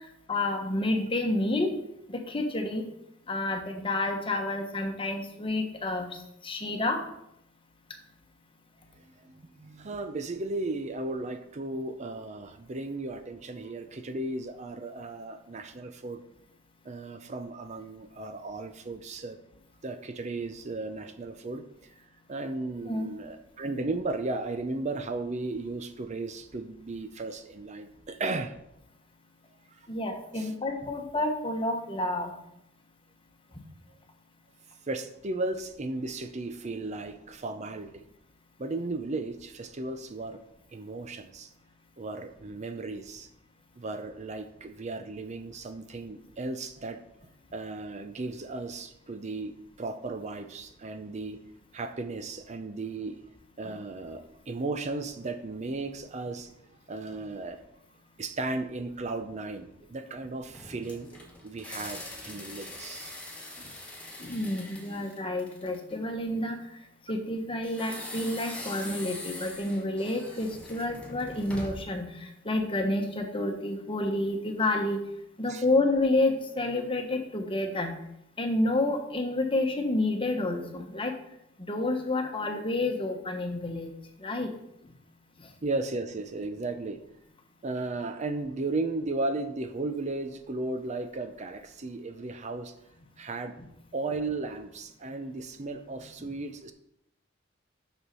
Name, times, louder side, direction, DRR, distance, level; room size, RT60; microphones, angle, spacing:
voice 1, 0.3-1.7 2.1-2.8 3.3-6.2 6.4-7.0 22.9-23.1 29.9-32.3 62.3-62.4 64.2-66.6 67.1-75.0 75.4-77.9 78.4-81.1 81.6-83.9 84.2-84.5 85.4-85.5 96.2-96.3, left 2 dB, 25° left, 4 dB, 1.1 m, -29 dB
voice 2, 9.0-16.2 16.8-19.4 19.8-21.6 22.0-28.5 29.7-29.9 30.3-30.5 30.8-30.9 34.9-38.0 38.6-40.4 40.7-41.5 42.0-43.3 43.8-47.0 47.5-51.4 51.7-53.2 53.6-56.5 56.9-57.6 58.2-63.2 75.5-75.6 85.6-87.0 87.6-92.7 93.2-93.6 93.9-96.7, right 2 dB, 35° right, 9 dB, 0.5 m, -35 dB
sound 1, 60.5-65.9 67.6-72.0, left 1 dB, 5° left, 1.5 m, -42 dB
7.0 x 6.3 x 5.4 m, 0.80 s
head